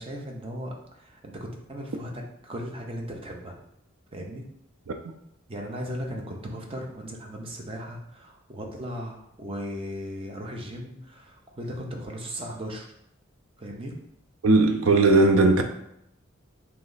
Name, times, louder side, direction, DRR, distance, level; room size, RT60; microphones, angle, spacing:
voice 1, 0.0-3.6 4.1-4.5 5.5-12.9 13.6-14.0, equal, 30° right, 0 dB, 0.6 m, -37 dB
voice 2, 14.4-15.6, right 3 dB, 75° right, 5 dB, 0.5 m, -18 dB
3.1 x 3.0 x 3.9 m, 0.78 s
head